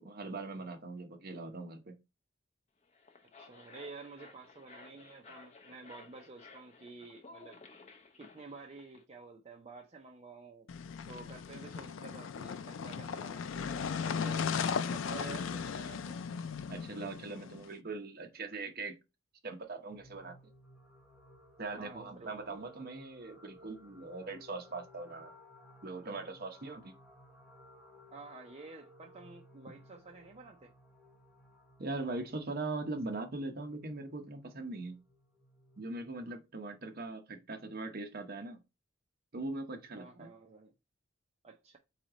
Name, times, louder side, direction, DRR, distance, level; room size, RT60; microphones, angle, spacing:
voice 1, 0.0-1.9 16.7-18.9 19.4-20.4 21.6-25.3 25.8-26.9 31.8-35.0 35.8-38.6 39.3-40.3, right 3 dB, 50° right, 0.9 m, -41 dB
sound 1, 2.8-9.0, left 4 dB, 35° left, 0.6 m, -56 dB
voice 2, 3.4-7.6 8.2-10.7 11.1-14.6 14.9-16.2 21.7-22.7 28.1-30.7 39.9-40.7 41.4-41.8, right 4 dB, 30° right, 0.5 m, -50 dB
car turning on gravel (with a bit of birds) (Megan Renault), 10.7-17.7, left 6 dB, 75° left, 0.4 m, -37 dB
sound 2, 19.9-36.2, left 1 dB, 5° right, 1.0 m, -60 dB
4.0 x 3.2 x 3.7 m
head